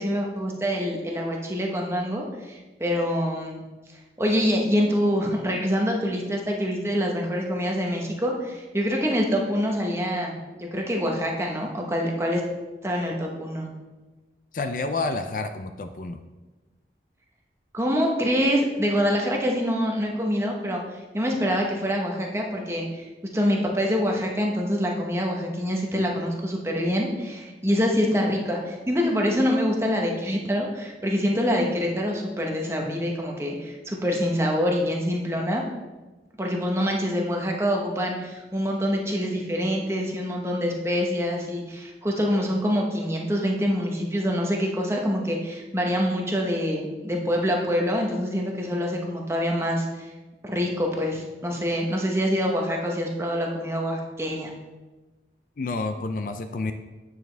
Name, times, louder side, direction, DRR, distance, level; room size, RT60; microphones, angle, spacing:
voice 1, 0.0-3.6 4.2-12.4 12.8-13.7 17.7-20.8 21.1-35.6 36.4-50.1 50.4-54.5, equal, 15° right, 0 dB, 1.0 m, -25 dB
voice 2, 14.5-16.2 55.6-56.7, left 3 dB, 50° left, 7 dB, 0.4 m, -29 dB
9.1 x 6.4 x 3.4 m, 1.2 s
head